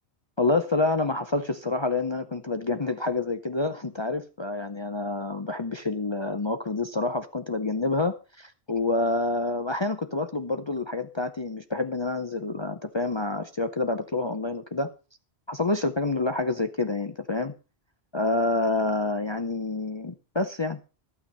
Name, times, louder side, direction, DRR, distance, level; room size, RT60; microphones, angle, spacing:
voice 1, 0.4-14.9 15.5-17.5 18.1-20.8, left 2 dB, 30° left, 0.7 m, -28 dB
12.5 x 9.0 x 5.4 m
omnidirectional pair, 1.1 m